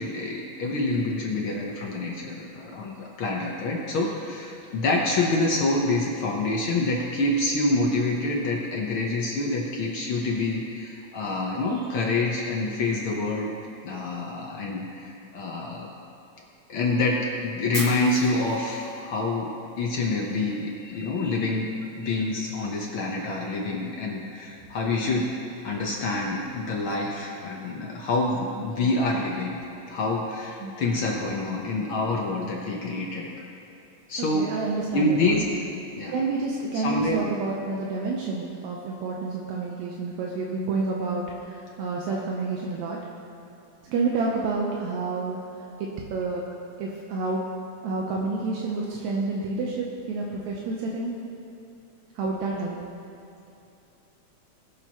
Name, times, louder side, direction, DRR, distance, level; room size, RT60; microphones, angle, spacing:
voice 1, 0.0-13.5 13.8-15.9 16.7-19.5 19.8-21.7 22.0-25.3 25.6-29.6 29.9-33.4 34.1-34.5 34.9-35.4 35.9-36.1 36.8-37.2, left 2 dB, 60° left, -2 dB, 1.4 m, -27 dB
Fire, 17.7-19.8, left 1 dB, 25° left, 2.0 m, -37 dB
voice 2, 34.3-35.5 36.1-43.0 43.8-45.4 45.8-46.4 46.8-47.4 47.8-51.1 52.2-52.8, right 3 dB, 80° right, -2 dB, 2.1 m, -29 dB
20.0 x 6.8 x 2.9 m, 2.8 s
omnidirectional pair, 3.3 m